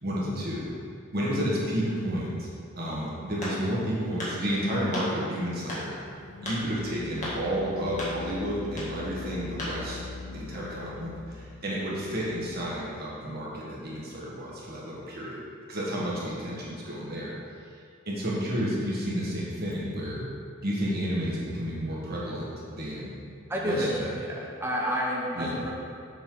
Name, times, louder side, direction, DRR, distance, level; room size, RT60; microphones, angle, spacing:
voice 1, 0.0-0.7 1.1-2.5 2.8-6.0 6.4-10.0 10.3-15.4 15.7-17.3 17.7-17.8 18.1-20.2 20.6-23.1 23.6-23.9 25.3-25.6, equal, 45° right, -5 dB, 1.6 m, -31 dB
sound 1, 3.4-3.8 4.2-4.4 4.9-5.1 5.7-5.9 6.5-6.6 7.2-7.4 8.0-8.2 8.7-8.9 9.6-9.8, left 1 dB, 35° left, 1.9 m, -34 dB
sound 2, 6.1-13.3, left 4 dB, 70° left, 0.4 m, -43 dB
voice 2, 23.5-25.7, equal, 10° right, -3 dB, 0.9 m, -29 dB
7.3 x 6.7 x 3.9 m, 2.3 s
head